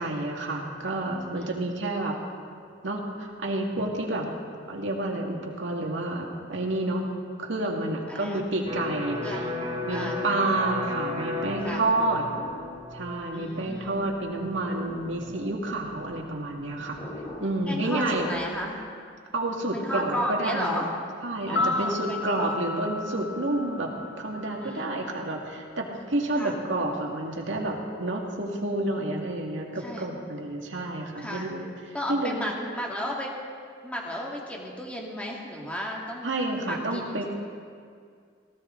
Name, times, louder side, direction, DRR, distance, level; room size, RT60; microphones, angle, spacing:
voice 1, 0.0-2.1 2.8-4.3 4.7-7.1 7.4-9.4 9.8-12.2 12.9-17.0 17.4-18.3 19.3-20.9 21.2-23.9 24.2-32.5 36.2-37.2, right 2 dB, 75° right, 0 dB, 2.0 m, -29 dB
voice 2, 1.4-1.7 8.1-8.4 9.2-9.6 9.9-10.2 11.6-11.8 13.3-13.9 17.6-18.8 19.7-20.9 21.5-22.5 24.6-25.1 26.4-26.5 29.8-30.1 31.2-31.5 31.9-33.4 33.8-36.3 36.6-37.2, equal, 5° left, -2 dB, 2.1 m, -33 dB
Electric guitar, 8.7-16.3, left 2 dB, 30° right, 2.5 m, -35 dB
sound 1, 11.8-18.9, left 1 dB, 30° left, 4.0 m, -46 dB
sound 2, 21.4-25.6 25.8-25.9, left 3 dB, 60° left, 0.4 m, -33 dB
18.0 x 15.0 x 3.8 m, 2.2 s
head